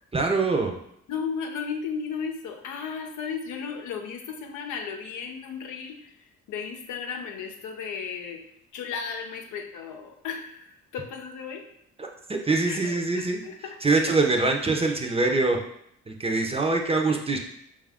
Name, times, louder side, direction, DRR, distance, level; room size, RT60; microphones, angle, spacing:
voice 1, 0.1-0.8 12.0-13.4 13.8-15.6 16.1-17.4, right 3 dB, 20° right, 2 dB, 0.6 m, -24 dB
voice 2, 1.1-6.1 6.5-8.4 8.7-10.6 10.9-11.6 12.6-14.1 17.1-17.2, left 6 dB, 80° left, 3 dB, 0.7 m, -35 dB
4.8 x 2.5 x 3.5 m, 0.73 s
cardioid pair, 90°, 30 cm